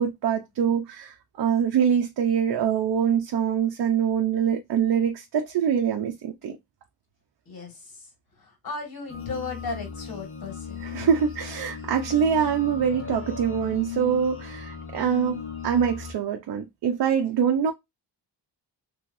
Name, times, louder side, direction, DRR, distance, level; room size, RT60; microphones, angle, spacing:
voice 1, 0.0-6.6 10.8-17.7, right 8 dB, 60° right, 0.7 m, -24 dB
voice 2, 7.5-8.1 8.4-10.8, left 4 dB, 55° left, 2.1 m, -36 dB
sound 1, 9.1-16.1, left 7 dB, 30° left, 1.1 m, -37 dB
3.1 x 3.1 x 2.6 m
cardioid pair, 90°, 43 cm